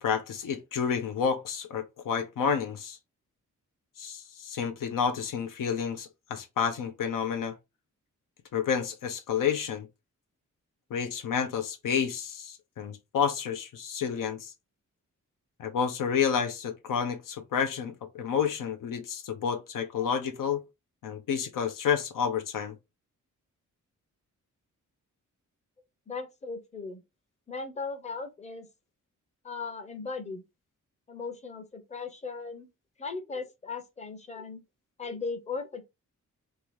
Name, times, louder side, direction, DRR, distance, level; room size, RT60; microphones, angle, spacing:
voice 1, 0.0-3.0 4.0-7.6 8.5-9.9 10.9-14.5 15.6-20.6 21.0-22.7, left 7 dB, 85° left, 0.6 m, -30 dB
voice 2, 26.1-27.0 27.5-28.7 29.4-30.4 31.1-32.7 33.0-34.6 35.0-35.8, left 4 dB, 20° left, 0.6 m, -37 dB
2.8 x 2.4 x 3.1 m
wide cardioid pair, 120°, 32 cm